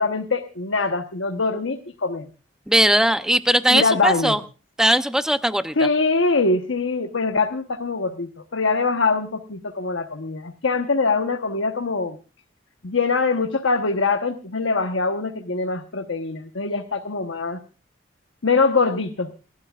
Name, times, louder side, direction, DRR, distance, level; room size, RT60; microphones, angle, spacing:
voice 1, 0.0-2.2 3.7-4.4 5.8-12.2 12.8-17.6 18.4-19.3, left 3 dB, 90° left, 5 dB, 1.1 m, -23 dB
voice 2, 2.7-4.4 4.8-5.7, right 1 dB, 5° right, 10 dB, 0.6 m, -19 dB
29.5 x 12.0 x 2.4 m, 0.34 s
head